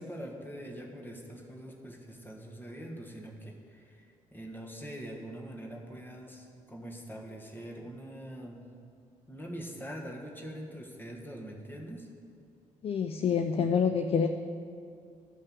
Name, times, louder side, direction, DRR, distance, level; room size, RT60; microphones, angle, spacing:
voice 1, 0.0-8.6 9.3-12.1, equal, 10° left, 0 dB, 1.8 m, -43 dB
voice 2, 12.8-14.3, left 6 dB, 35° left, 7 dB, 0.5 m, -27 dB
12.0 x 5.4 x 6.2 m, 2.4 s
figure-of-eight pair, 45°, 17 cm